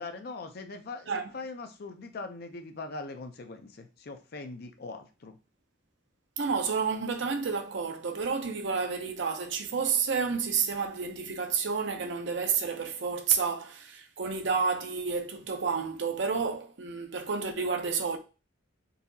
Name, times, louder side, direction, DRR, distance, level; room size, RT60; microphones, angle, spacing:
voice 1, 0.0-5.4, left 3 dB, 50° left, 0.5 m, -41 dB
voice 2, 6.4-18.2, right 5 dB, 60° right, 0.6 m, -30 dB
4.0 x 2.8 x 2.6 m
head